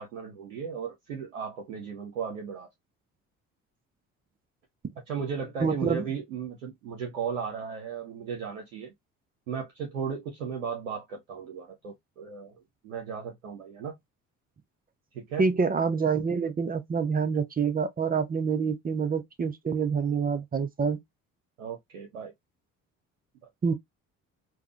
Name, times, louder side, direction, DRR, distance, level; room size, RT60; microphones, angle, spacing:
voice 1, 0.0-2.7 5.1-8.9 9.5-14.0 15.1-15.5 21.6-22.3, right 6 dB, 90° right, 0.6 m, -36 dB
voice 2, 5.6-6.0 15.4-21.0 23.6-23.7, right 5 dB, 25° right, 0.5 m, -27 dB
3.4 x 2.1 x 2.3 m
hypercardioid pair, 50°, 39 cm